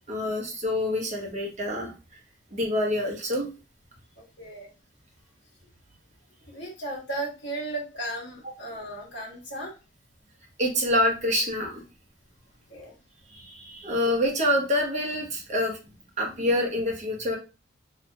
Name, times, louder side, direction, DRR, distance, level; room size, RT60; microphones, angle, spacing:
voice 1, 0.1-1.9 2.5-3.5 10.6-11.8 13.3-15.8 16.2-17.4, left 1 dB, 40° right, 0 dB, 0.9 m, -26 dB
voice 2, 4.2-4.7 6.5-9.7 12.7-13.0, right 2 dB, 70° left, -4 dB, 1.4 m, -35 dB
2.9 x 2.8 x 2.2 m, 0.30 s
head